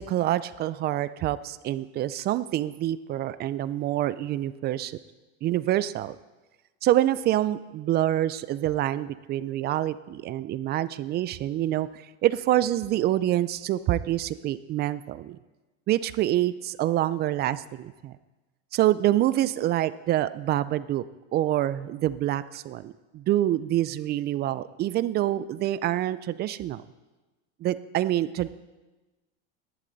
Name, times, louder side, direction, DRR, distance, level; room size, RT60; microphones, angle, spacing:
voice 1, 0.0-5.0 5.4-6.2 6.8-15.4 15.9-18.2 18.7-21.0 21.3-26.8 27.6-28.5, right 13 dB, 30° right, 15 dB, 0.4 m, -26 dB
17.0 x 11.0 x 4.0 m, 1.2 s
supercardioid pair, 125°, 34 cm